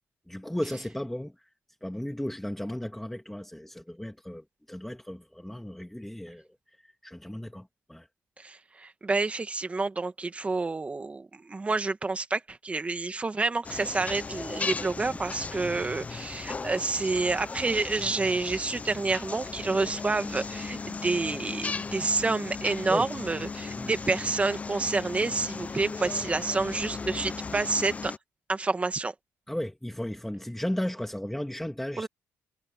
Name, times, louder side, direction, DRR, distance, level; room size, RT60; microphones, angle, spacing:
voice 1, 0.3-1.3 1.8-6.5 7.0-8.1 22.9-23.1 23.8-23.9 29.5-32.1, left 1 dB, 5° left, 2.6 m, -35 dB
voice 2, 8.4-28.1 28.5-29.1 32.0-32.1, right 3 dB, 25° right, 1.8 m, -29 dB
sound 1, 13.6-28.2, left 4 dB, 25° left, 0.6 m, -37 dB
cardioid pair, 105°, 6 cm